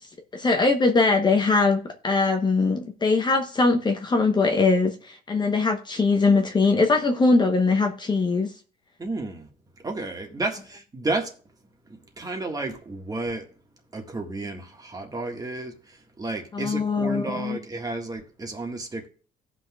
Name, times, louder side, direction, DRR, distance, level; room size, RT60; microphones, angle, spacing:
voice 1, 0.3-8.5 16.5-17.6, left 3 dB, 25° left, 1.0 m, -21 dB
voice 2, 9.0-9.5 9.8-11.3 11.9-13.5 13.9-19.1, right 2 dB, 20° right, 1.7 m, -32 dB
17.5 x 6.0 x 2.4 m
cardioid pair, 110°, 17 cm